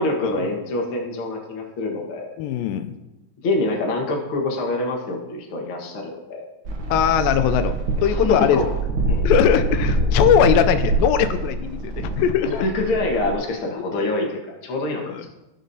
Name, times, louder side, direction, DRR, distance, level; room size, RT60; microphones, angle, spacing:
voice 1, 0.0-2.3 3.4-6.4 8.1-8.6 9.1-9.2 12.4-15.1, left 2 dB, 50° left, 0 dB, 1.8 m, -25 dB
voice 2, 2.4-2.9 6.9-8.6 9.3-12.5 13.9-14.3 15.0-15.3, left 9 dB, 90° left, 10 dB, 2.3 m, -20 dB
sound 1, 6.6-13.3, right 2 dB, 60° right, 1.3 m, -24 dB
16.0 x 6.2 x 2.8 m, 0.99 s
omnidirectional pair, 4.0 m